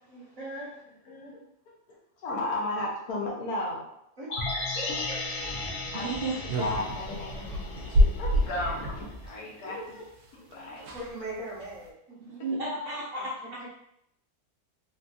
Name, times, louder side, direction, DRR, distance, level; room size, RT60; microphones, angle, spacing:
voice 1, 0.1-0.7 1.1-1.2 4.2-4.3 4.8-5.5 9.6-9.9 10.3-12.4 13.1-13.2 13.6-13.7, right 1 dB, 20° right, -8 dB, 0.7 m, -41 dB
voice 2, 2.2-3.9 5.9-6.1 6.6-10.0 10.3-10.9, left 2 dB, 85° left, -3 dB, 1.4 m, -34 dB
sound 1, 4.3-8.5 8.8-8.9, left 2 dB, 60° left, 0.6 m, -35 dB
sound 2, 5.1-9.3, left 1 dB, 30° left, 1.0 m, -44 dB
voice 3, 5.8-6.7 7.8-8.0 12.2-13.6, right 2 dB, 65° right, -5 dB, 0.5 m, -34 dB
sound 3, 6.5-9.0 10.2-10.3 10.5-10.6 10.8-11.1 11.6-11.9, equal, 85° right, 1.1 m, -27 dB
3.4 x 2.5 x 2.3 m, 0.76 s
omnidirectional pair, 1.6 m